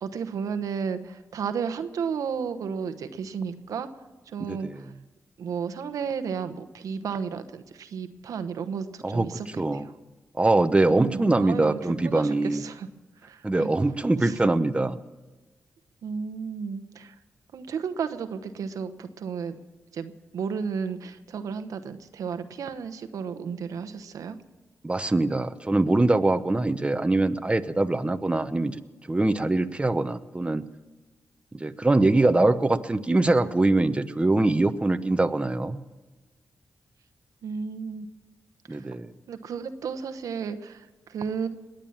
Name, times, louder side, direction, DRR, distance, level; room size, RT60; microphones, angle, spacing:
voice 1, 0.0-4.9 5.4-9.9 10.9-12.9 13.2-13.8 14.2-14.4 16.0-17.2 17.5-19.6 19.9-24.4 37.4-38.1 38.7-38.9 39.3-41.5, right 6 dB, 85° right, 10 dB, 1.0 m, -33 dB
voice 2, 10.4-12.6 13.4-15.0 24.8-28.7 29.1-30.6 31.6-35.8 38.7-39.1, right 2 dB, 20° right, 9 dB, 0.8 m, -23 dB
20.5 x 9.1 x 7.2 m, 1.2 s
cardioid pair, 60°, 6 cm